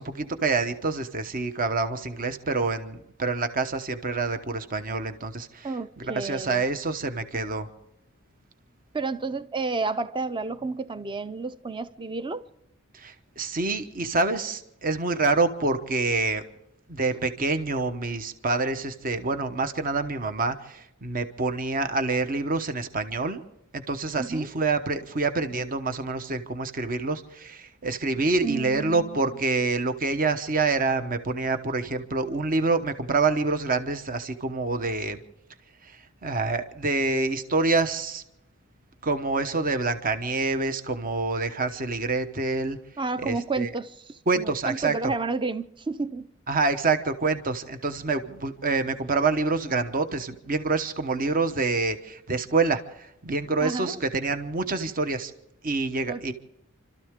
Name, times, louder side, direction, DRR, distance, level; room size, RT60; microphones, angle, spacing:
voice 1, 0.0-5.7 6.0-7.7 12.9-16.4 16.9-23.4 23.7-35.2 35.8-38.2 39.0-42.8 43.2-43.7 44.3-45.1 46.5-55.3 55.6-56.3, right 3 dB, 40° right, 1.0 m, -27 dB
voice 2, 5.6-6.6 8.9-12.4 24.2-24.5 28.4-29.2 43.0-46.3 53.6-54.0 56.1-56.3, right 3 dB, 25° right, 0.6 m, -31 dB
29.5 x 13.0 x 3.7 m
head